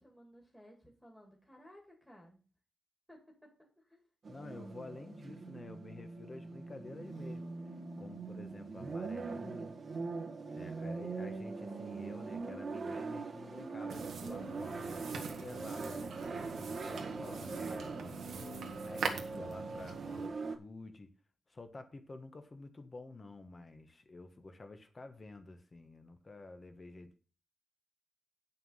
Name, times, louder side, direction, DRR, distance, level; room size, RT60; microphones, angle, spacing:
voice 1, 0.0-2.4 3.1-3.5 3.8-4.0 10.4-10.9, equal, 5° left, 2.3 m, -58 dB
sound 1, 4.2-20.6, right 4 dB, 50° right, 1.4 m, -42 dB
voice 2, 4.3-7.4 8.0-9.7 10.5-16.1 16.6-18.4 18.8-21.1 21.5-27.2, left 2 dB, 30° left, 1.4 m, -50 dB
sound 2, 13.9-20.3, right 5 dB, 85° right, 1.7 m, -43 dB
9.4 x 6.9 x 5.6 m
wide cardioid pair, 140°, 0 cm